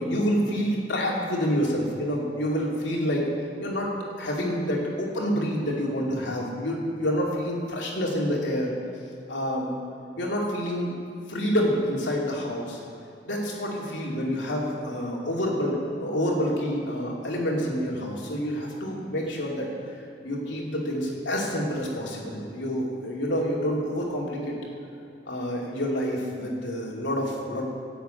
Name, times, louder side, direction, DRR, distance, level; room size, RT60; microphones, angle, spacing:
voice 1, 0.0-3.2 3.6-3.9 4.2-8.7 9.3-9.7 10.2-10.9 11.3-12.8 13.3-19.7 20.2-24.5 25.3-27.6, equal, 90° left, -3 dB, 2.7 m, -28 dB
12.0 x 8.0 x 9.1 m, 2.7 s
head